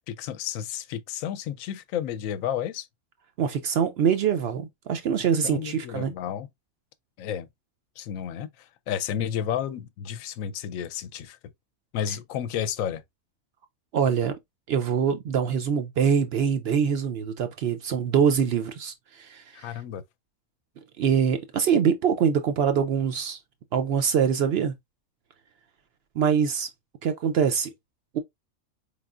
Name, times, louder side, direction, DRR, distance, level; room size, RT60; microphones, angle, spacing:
voice 1, 0.1-2.9 5.4-6.5 7.2-7.5 8.0-11.4 11.9-13.0 19.5-20.0, left 9 dB, 75° left, 0.9 m, -31 dB
voice 2, 3.4-6.1 13.9-14.3 14.7-19.7 21.0-23.4 23.7-24.7 26.2-26.7 27.0-27.7 28.1-28.2, right 7 dB, 65° right, 0.6 m, -24 dB
4.5 x 3.5 x 2.4 m
omnidirectional pair, 1.5 m